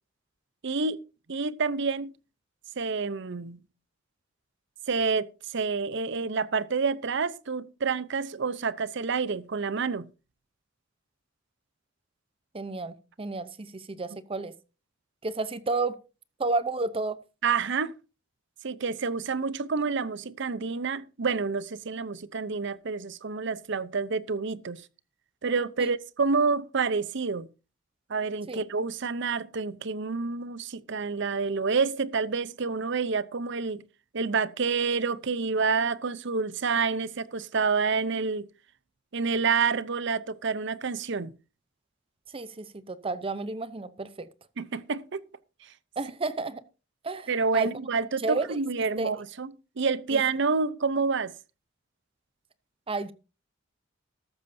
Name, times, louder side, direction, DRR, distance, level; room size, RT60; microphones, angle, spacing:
voice 1, 0.6-1.0 1.3-2.1 2.8-3.6 4.9-10.0 17.4-17.9 18.6-24.8 25.4-27.5 28.1-33.8 34.1-38.5 39.1-41.3 44.6-45.2 47.3-51.3, right 4 dB, 65° right, 0.7 m, -28 dB
voice 2, 12.5-14.5 15.2-16.0 16.4-17.2 25.8-25.9 28.5-28.6 42.3-44.3 46.0-46.6 47.0-47.7 48.2-49.1 50.1-50.2 52.9-53.1, right 3 dB, 30° right, 0.7 m, -31 dB
13.5 x 12.5 x 2.7 m
head